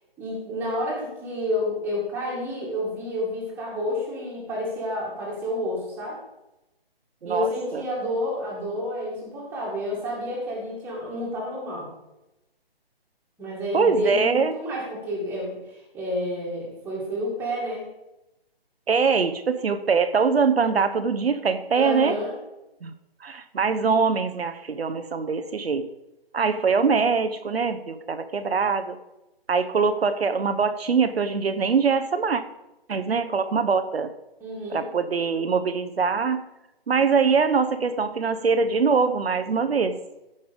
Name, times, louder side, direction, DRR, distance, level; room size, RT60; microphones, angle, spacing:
voice 1, 0.2-6.2 7.2-11.9 13.4-17.8 21.7-22.3 34.4-34.8, left 1 dB, 5° right, -4 dB, 1.9 m, -30 dB
voice 2, 7.2-7.8 13.7-14.5 18.9-22.2 22.8-22.9 23.2-25.9 26.3-29.0 29.5-32.4 32.9-34.1 34.7-36.4 36.9-40.0, right 5 dB, 75° right, 9 dB, 0.9 m, -23 dB
14.5 x 5.5 x 5.1 m, 0.94 s
hypercardioid pair, 165°, 30 cm